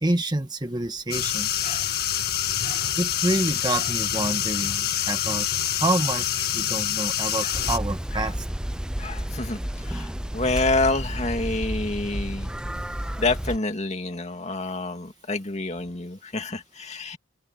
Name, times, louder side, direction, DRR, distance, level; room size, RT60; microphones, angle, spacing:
voice 1, 0.0-1.6 3.0-5.5 5.8-8.3, right 2 dB, 25° right, 1.5 m, -27 dB
sound 1, 1.1-7.8, left 10 dB, 55° left, 1.7 m, -26 dB
sound 2, 7.5-13.6, equal, 5° right, 0.5 m, -31 dB
voice 2, 9.0-12.5 13.2-17.2, left 2 dB, 35° left, 2.4 m, -28 dB
head